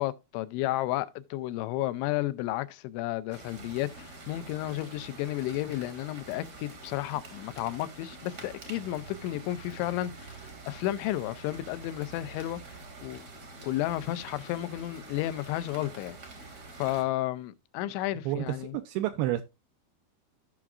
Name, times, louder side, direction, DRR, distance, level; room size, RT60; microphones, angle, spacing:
voice 1, 0.0-12.6 13.0-13.2 13.6-16.2 16.8-18.8, left 15 dB, 85° left, 3.0 m, -32 dB
sound 1, 3.3-17.0, right 3 dB, 60° right, 1.0 m, -46 dB
voice 2, 18.3-19.4, right 14 dB, 85° right, 2.2 m, -30 dB
15.0 x 5.9 x 2.4 m
omnidirectional pair, 5.2 m